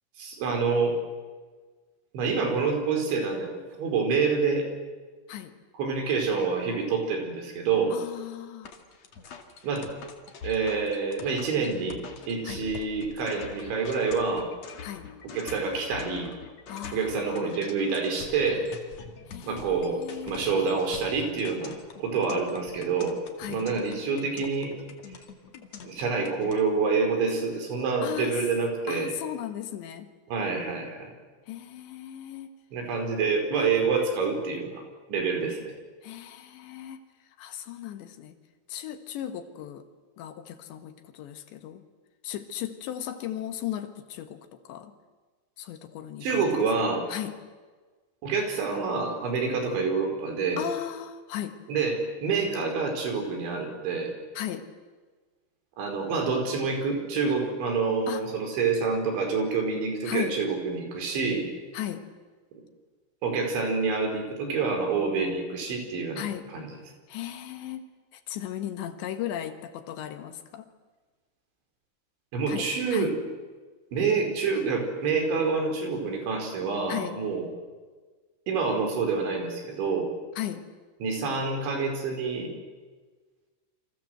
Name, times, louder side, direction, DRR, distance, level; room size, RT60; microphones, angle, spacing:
voice 1, 0.2-1.0 2.1-4.7 5.8-7.9 9.6-9.9 10.4-12.0 12.3-14.5 15.3-16.3 16.9-18.7 19.4-21.7 22.0-23.2 23.5-24.7 25.8-29.1 30.3-31.1 32.7-34.8 35.1-35.7 46.2-47.1 48.2-50.6 51.7-54.1 55.8-61.5 63.2-66.2 66.5-66.7 72.3-73.1 73.9-77.5 78.5-80.1 81.0-82.5, right 4 dB, 70° right, 4 dB, 7.0 m, -27 dB
voice 2, 7.9-8.7 12.4-12.7 14.8-15.1 16.7-17.6 19.3-20.5 23.4-23.7 28.0-28.5 28.9-30.1 31.5-32.5 36.0-37.0 37.4-38.4 38.7-39.9 40.2-41.8 42.2-44.9 45.6-46.6 47.1-47.4 50.6-51.6 54.3-54.7 58.1-58.3 60.0-60.4 61.7-62.1 66.2-66.5 67.1-70.7 72.5-73.1 76.9-77.2 80.4-80.7, left 11 dB, 70° left, 8 dB, 3.5 m, -36 dB
sound 1, 8.6-26.6, left 6 dB, 45° left, 2.6 m, -45 dB
29.0 x 26.0 x 7.9 m, 1.4 s
omnidirectional pair, 5.5 m